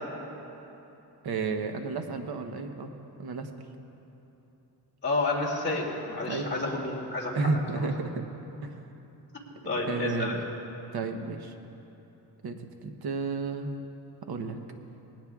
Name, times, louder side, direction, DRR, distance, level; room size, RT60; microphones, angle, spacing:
voice 1, 1.2-2.9 3.2-3.5 6.2-6.5 7.3-8.3 8.6-8.8 9.9-10.4 10.9-11.5 12.4-13.7 14.3-14.6, right 4 dB, 65° right, 5 dB, 1.0 m, -32 dB
voice 2, 5.0-7.5 9.6-10.4, left 2 dB, 25° left, -4 dB, 2.4 m, -30 dB
19.0 x 17.5 x 2.4 m, 3.0 s
wide cardioid pair, 150°, 41 cm